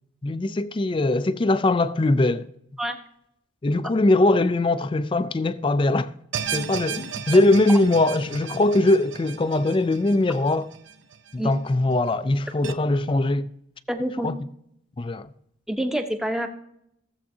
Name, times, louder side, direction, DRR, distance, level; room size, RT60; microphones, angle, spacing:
voice 1, 0.2-2.5 3.6-6.1 6.5-10.7 11.3-13.5 14.2-14.3 15.0-15.3, left 2 dB, 25° left, 0.4 m, -21 dB
sound 1, 6.3-11.6 11.9-12.0 12.6-12.7, right 7 dB, 80° right, 0.6 m, -34 dB
voice 2, 13.9-14.3 15.7-16.5, right 1 dB, 5° right, 0.8 m, -27 dB
16.0 x 7.4 x 2.8 m
head